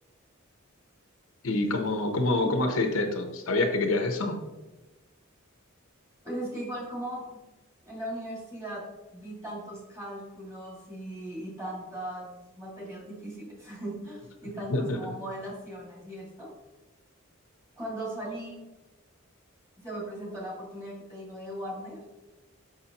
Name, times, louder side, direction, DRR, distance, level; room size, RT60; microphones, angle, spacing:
voice 1, 1.4-4.4 14.7-15.0, left 2 dB, 70° left, 5 dB, 0.8 m, -26 dB
voice 2, 6.2-7.4 7.8-16.5 17.8-18.7 19.8-22.0, right 1 dB, 15° right, -4 dB, 1.9 m, -38 dB
5.9 x 5.9 x 2.9 m, 1.1 s
head